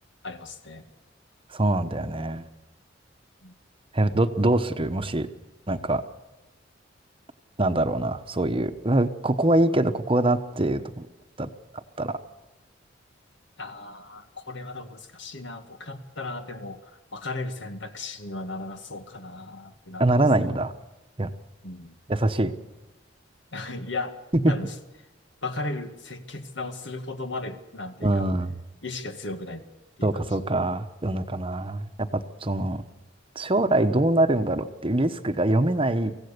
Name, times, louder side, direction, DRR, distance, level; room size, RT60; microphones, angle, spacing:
voice 1, 0.2-0.9 3.4-3.5 13.6-20.1 21.6-22.0 23.5-24.2 24.5-24.7 25.4-28.3 28.8-29.7 30.0-30.3, left 2 dB, 65° left, 7 dB, 2.1 m, -36 dB
voice 2, 1.5-2.5 3.9-5.3 5.7-6.0 7.6-11.1 11.4-11.5 12.0-12.2 20.0-20.7 21.2-21.3 22.1-22.5 24.3-24.5 28.0-28.5 30.0-32.8 33.3-36.1, right 1 dB, 30° right, 8 dB, 1.1 m, -24 dB
24.5 x 16.5 x 6.8 m, 1.0 s
head